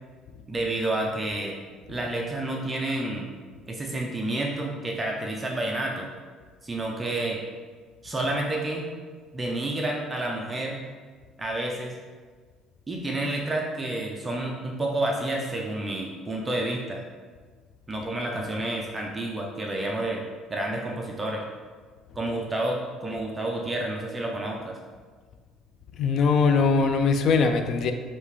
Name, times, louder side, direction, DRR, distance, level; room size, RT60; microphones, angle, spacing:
voice 1, 0.5-1.6 1.9-3.3 3.7-6.1 6.6-7.4 8.0-8.9 9.3-10.8 11.4-11.9 12.9-17.0 17.9-20.2 20.5-21.4 22.2-24.8, right 1 dB, 20° right, 0 dB, 0.4 m, -29 dB
voice 2, 26.0-27.9, left 4 dB, 50° left, 7 dB, 0.3 m, -21 dB
4.9 x 2.7 x 3.2 m, 1.5 s
cardioid pair, 135°, 0 cm